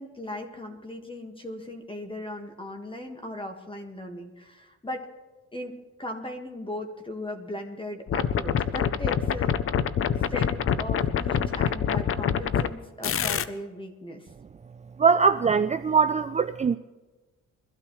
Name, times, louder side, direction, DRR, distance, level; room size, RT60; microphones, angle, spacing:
voice 1, 0.0-5.1 5.5-9.6 10.3-14.3, left 1 dB, 15° left, 4 dB, 1.7 m, -38 dB
sound 1, 8.1-12.7 13.0-13.4, left 8 dB, 45° left, 0.6 m, -26 dB
voice 2, 15.0-16.8, right 5 dB, 25° right, 9 dB, 0.4 m, -21 dB
23.0 x 12.5 x 3.2 m, 1.2 s
cardioid pair, 90°, 30 cm